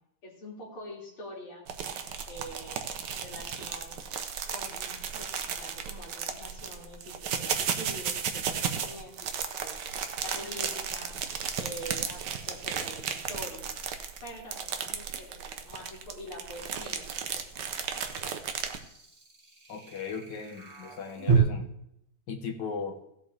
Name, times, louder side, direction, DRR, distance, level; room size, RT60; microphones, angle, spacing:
voice 1, 0.2-1.9 2.3-4.0 4.5-9.2 9.6-13.8 14.2-17.1, equal, 85° left, -4 dB, 3.6 m, -45 dB
sound 1, 1.7-18.8, right 7 dB, 60° right, 1.4 m, -34 dB
sound 2, 11.4-21.4, right 5 dB, 25° right, 1.9 m, -37 dB
voice 2, 19.7-21.7 22.3-23.0, left 5 dB, 60° left, 5 dB, 1.9 m, -37 dB
16.0 x 7.8 x 3.4 m, 0.78 s
omnidirectional pair, 2.3 m